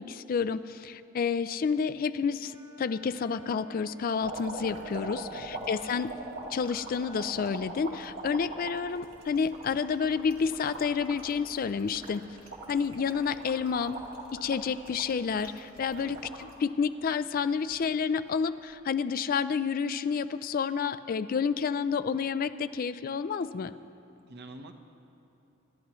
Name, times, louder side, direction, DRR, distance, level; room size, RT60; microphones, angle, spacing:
voice 1, 0.0-6.1 6.5-12.2 12.7-14.0 14.3-23.7, left 6 dB, 45° left, 13 dB, 0.3 m, -30 dB
Wind instrument woodwind instrument, 2.4-7.5, right 1 dB, 40° right, 1.4 m, -52 dB
sound 1, 4.2-16.5 17.0-17.8 18.7-18.9, right 2 dB, 80° right, 2.4 m, -42 dB
voice 2, 5.3-5.7 15.9-16.2 24.3-24.7, right 2 dB, 55° right, 6 dB, 0.9 m, -47 dB
25.5 x 12.5 x 3.1 m, 3.0 s
head